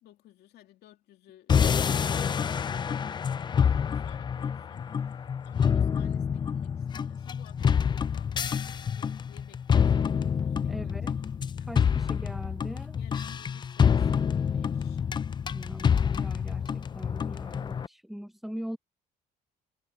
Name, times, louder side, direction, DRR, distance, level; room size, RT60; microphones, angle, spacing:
voice 1, 0.0-11.2 11.5-11.7 12.7-15.1, left 13 dB, 75° left, 2.5 m, -56 dB
sound 1, 1.5-17.9, left 7 dB, 25° left, 0.4 m, -27 dB
voice 2, 10.7-11.2 11.7-13.0 15.5-18.8, equal, ahead, 0.8 m, -41 dB
cardioid pair, 110°, 17 cm